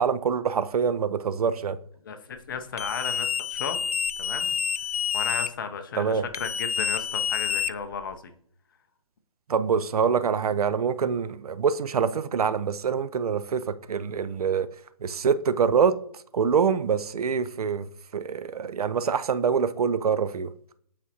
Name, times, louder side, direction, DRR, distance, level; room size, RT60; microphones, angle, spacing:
voice 1, 0.0-1.8 5.9-6.2 9.5-14.7 15.0-16.0 16.3-17.9 18.1-20.5, right 6 dB, 80° right, 0.5 m, -25 dB
voice 2, 2.1-3.8 4.2-4.6 5.1-8.3, left 6 dB, 35° left, 0.6 m, -34 dB
sound 1, 2.8-5.5 6.3-8.1, left 8 dB, 80° left, 0.4 m, -28 dB
8.4 x 4.2 x 2.9 m
hypercardioid pair, 160°, 19 cm